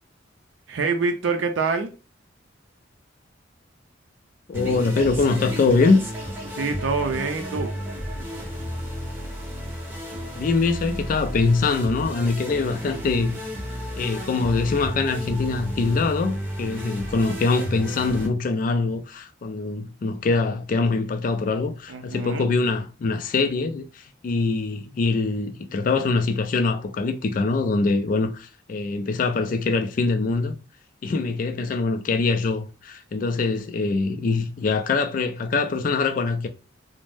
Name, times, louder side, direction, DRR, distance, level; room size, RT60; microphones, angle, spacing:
voice 1, 0.7-1.9 6.5-7.7 21.9-22.5, right 4 dB, 75° right, 0.5 m, -25 dB
voice 2, 4.5-6.0 10.3-13.3 14.0-30.6 31.0-36.5, left 3 dB, 45° left, 0.3 m, -23 dB
sound 1, 4.5-18.3, equal, 10° right, 0.7 m, -33 dB
2.6 x 2.0 x 3.2 m
head